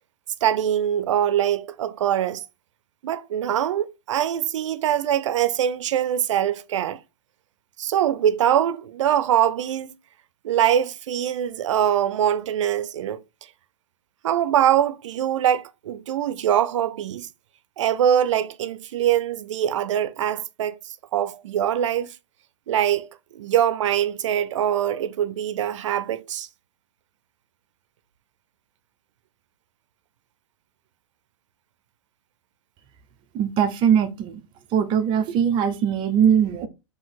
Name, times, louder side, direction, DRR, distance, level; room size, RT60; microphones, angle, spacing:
voice 1, 0.4-2.4 3.0-7.0 7.8-9.9 10.4-13.2 14.2-17.3 17.8-20.8 21.1-22.1 22.7-26.5, right 10 dB, 80° right, 0.5 m, -23 dB
voice 2, 33.3-34.4 34.7-36.7, right 8 dB, 30° right, 0.5 m, -21 dB
3.8 x 2.8 x 4.0 m
hypercardioid pair, 130°, 15 cm